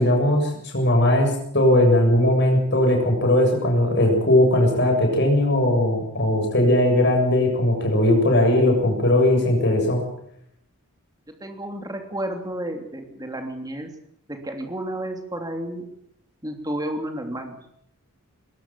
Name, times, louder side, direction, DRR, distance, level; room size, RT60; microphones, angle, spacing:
voice 1, 0.0-10.0, left 1 dB, 50° left, 3 dB, 7.4 m, -19 dB
voice 2, 11.4-13.9 14.3-15.8 16.4-17.6, right 1 dB, 15° right, 5 dB, 3.1 m, -31 dB
21.5 x 17.5 x 7.6 m, 0.74 s
head